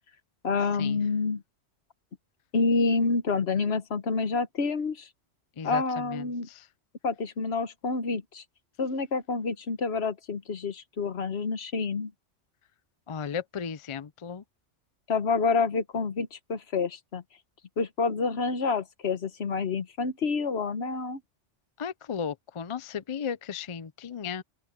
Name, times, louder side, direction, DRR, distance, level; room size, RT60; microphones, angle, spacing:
voice 1, 0.4-1.4 2.5-5.1 5.6-6.5 7.0-8.4 8.8-12.1 15.1-17.2 17.8-21.2, left 4 dB, 60° left, 1.4 m, -28 dB
voice 2, 5.6-6.6 13.1-14.4 21.8-24.4, left 7 dB, 40° left, 0.4 m, -35 dB
open air
omnidirectional pair, 1.2 m